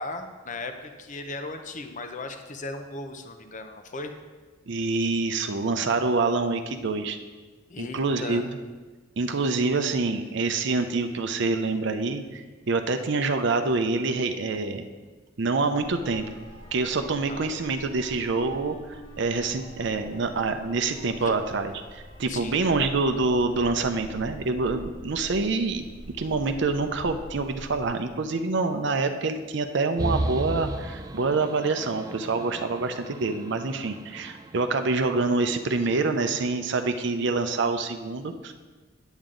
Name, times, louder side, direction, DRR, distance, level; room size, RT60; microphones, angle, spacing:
voice 1, 0.0-4.1 7.7-8.4 17.3-17.5 21.2-21.3 22.3-22.6, left 2 dB, 40° left, 7 dB, 0.7 m, -37 dB
voice 2, 4.7-7.2 7.8-8.6 9.2-12.4 12.7-14.9 15.4-16.2 16.7-25.9 26.2-38.5, right 3 dB, 65° right, 8 dB, 0.6 m, -26 dB
sound 1, 15.8-27.9, equal, 85° left, 2.1 m, -45 dB
sound 2, 30.0-35.5, right 1 dB, 20° right, 0.4 m, -34 dB
9.0 x 8.1 x 3.8 m, 1.3 s
head